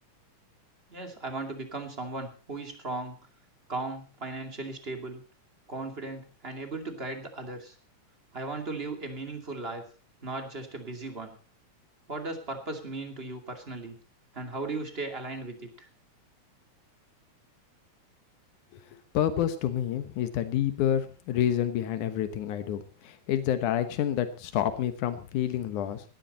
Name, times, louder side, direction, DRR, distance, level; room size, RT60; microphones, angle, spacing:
voice 1, 0.9-3.2 3.7-5.2 5.7-7.8 8.3-9.8 10.2-11.4 12.1-14.0 14.3-15.9, right 2 dB, 20° right, 5 dB, 2.4 m, -37 dB
voice 2, 19.1-26.0, left 10 dB, 85° left, 10 dB, 2.7 m, -28 dB
18.0 x 12.5 x 4.2 m, 0.37 s
omnidirectional pair, 3.4 m